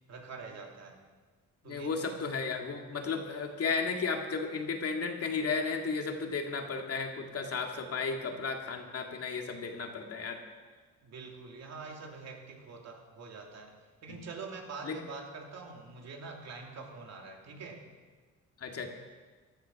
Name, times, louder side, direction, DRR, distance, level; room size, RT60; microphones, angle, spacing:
voice 1, 0.1-1.0 1.6-2.2 11.0-17.9, right 4 dB, 60° right, 1 dB, 2.9 m, -45 dB
voice 2, 1.7-10.4 14.1-14.2 14.8-15.0 18.6-18.9, left 4 dB, 50° left, 3 dB, 2.2 m, -34 dB
16.0 x 11.5 x 6.0 m, 1.4 s
cardioid pair, 90°, 30 cm